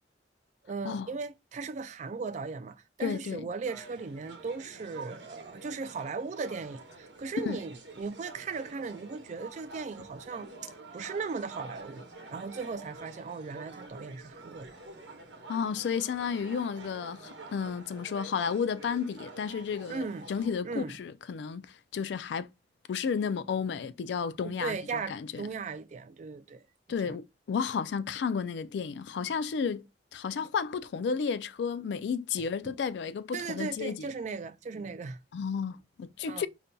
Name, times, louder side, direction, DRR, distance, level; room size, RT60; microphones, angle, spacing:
voice 1, 0.6-14.8 19.9-20.3 20.6-21.0 24.4-26.6 27.0-27.1 32.6-32.8 33.3-35.2 36.2-36.5, right 4 dB, 40° right, 0.3 m, -37 dB
voice 2, 3.0-3.5 7.4-7.6 15.5-21.6 21.9-22.5 22.9-24.8 25.1-25.4 26.9-29.8 30.1-34.1 35.3-36.5, left 6 dB, 75° left, 0.3 m, -32 dB
sound 1, 3.6-20.6, right 3 dB, 90° right, 0.8 m, -48 dB
5.2 x 2.6 x 2.2 m
head